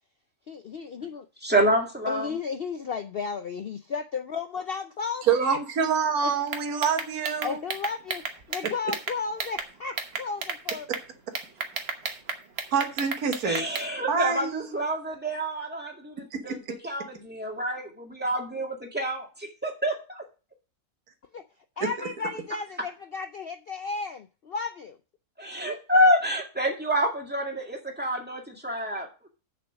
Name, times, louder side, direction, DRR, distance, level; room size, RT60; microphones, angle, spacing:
voice 1, 0.5-1.3 2.1-5.6 6.2-6.3 7.4-10.9 21.3-21.4 21.8-25.0, left 5 dB, 65° left, 0.6 m, -33 dB
voice 2, 1.4-2.3 13.4-16.6 16.8-20.2 25.4-29.3, equal, 5° right, 2.0 m, -27 dB
voice 3, 5.2-7.6 12.7-13.6 14.1-14.8 16.3-16.5 21.8-21.9, right 6 dB, 70° right, 1.7 m, -26 dB
sound 1, 6.5-9.7 10.0-11.0 11.3-13.9, right 4 dB, 45° right, 1.2 m, -33 dB
6.9 x 6.4 x 6.2 m
omnidirectional pair, 1.6 m